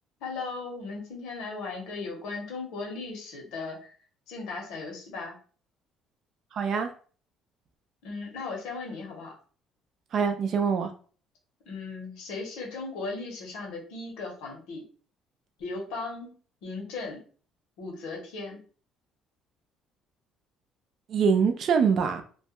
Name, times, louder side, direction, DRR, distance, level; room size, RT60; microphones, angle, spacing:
voice 1, 0.2-3.9 4.3-5.4 8.0-9.3 11.7-14.8 15.6-16.4 16.6-17.2 17.8-18.6, left 3 dB, 90° left, 0.9 m, -37 dB
voice 2, 6.5-6.9 10.1-10.9 21.1-22.2, right 6 dB, 50° right, 0.4 m, -24 dB
2.3 x 2.1 x 2.8 m
cardioid pair, 140°, 0 cm